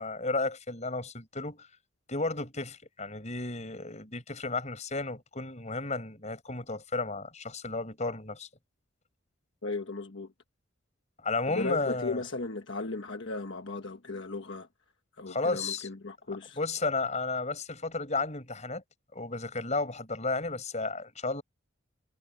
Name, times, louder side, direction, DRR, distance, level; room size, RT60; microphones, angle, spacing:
voice 1, 0.0-1.7 2.1-8.5 11.2-12.2 15.3-15.9 16.6-18.8 19.1-21.4, left 3 dB, 35° left, 6.6 m, -33 dB
voice 2, 9.6-10.3 11.5-14.7 15.2-16.6, left 3 dB, 60° left, 1.4 m, -36 dB
head